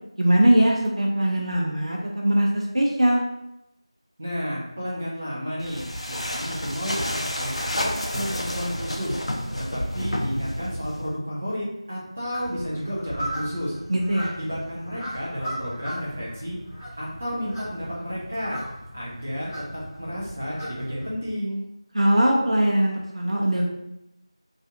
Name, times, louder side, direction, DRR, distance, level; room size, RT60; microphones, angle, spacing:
voice 1, 0.2-3.2 13.9-14.3 21.9-23.6, right 1 dB, 80° right, -1 dB, 0.5 m, -21 dB
voice 2, 4.2-9.2 9.6-13.8 14.4-16.6 17.0-18.6 18.9-19.5 20.0-21.6, equal, 15° right, -7 dB, 0.4 m, -31 dB
sound 1, 5.6-11.2, left 1 dB, 90° left, 0.5 m, -30 dB
sound 2, 12.3-21.1, equal, 30° left, 0.8 m, -38 dB
2.4 x 2.4 x 2.7 m, 0.86 s
figure-of-eight pair, 175°, 3 cm